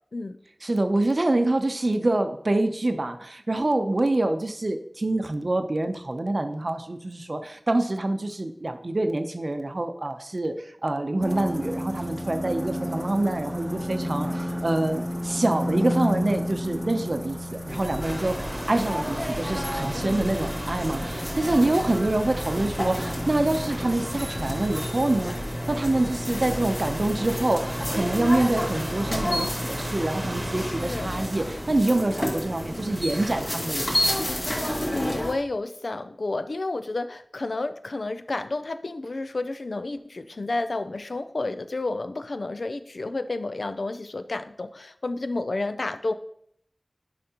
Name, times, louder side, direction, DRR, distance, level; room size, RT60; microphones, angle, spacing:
voice 1, 0.6-25.4 25.7-34.2, right 2 dB, 55° right, 7 dB, 0.7 m, -26 dB
sound 1, 11.2-25.5, equal, 5° right, 0.8 m, -33 dB
sound 2, 17.7-35.3, equal, 35° left, 2.3 m, -30 dB
sound 3, 18.0-33.9, right 1 dB, 30° right, 1.0 m, -40 dB
voice 2, 19.9-20.3 30.6-31.1 34.9-46.1, left 2 dB, 80° left, 10 dB, 0.4 m, -31 dB
10.0 x 5.1 x 2.9 m, 0.70 s
wide cardioid pair, 50°, 0 cm